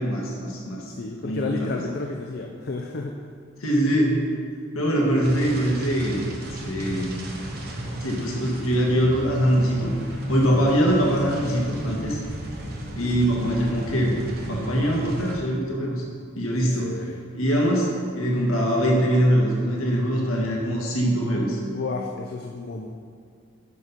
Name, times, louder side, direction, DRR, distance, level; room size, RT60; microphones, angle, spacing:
voice 1, 0.0-0.9 1.2-1.8 3.6-4.2 4.7-6.2 6.6-7.1 8.0-9.9 10.3-12.2 12.9-14.2 14.5-16.0 16.4-16.9 17.3-21.6, equal, 75° left, -2 dB, 1.5 m, -23 dB
voice 2, 1.0-3.2 8.3-8.4 16.5-17.2 21.7-22.9, left 3 dB, 50° left, 2 dB, 0.5 m, -32 dB
sound 1, 5.2-15.4, equal, 45° right, 1.1 m, -33 dB
9.3 x 5.9 x 4.1 m, 2.2 s
head